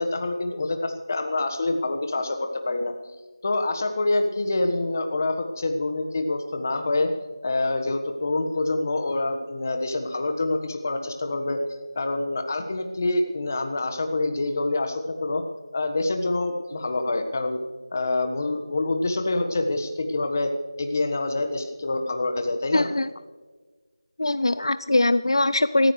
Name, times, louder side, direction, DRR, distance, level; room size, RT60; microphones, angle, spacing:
voice 1, 0.0-2.9 3.4-7.1 7.4-11.6 11.9-15.4 15.7-17.6 17.9-20.5 20.8-22.9, left 2 dB, 35° left, 6 dB, 1.4 m, -26 dB
voice 2, 22.7-23.1 24.2-25.9, left 2 dB, 75° left, 14 dB, 0.4 m, -21 dB
22.5 x 14.5 x 3.3 m, 1.4 s
figure-of-eight pair, 170°, 3 cm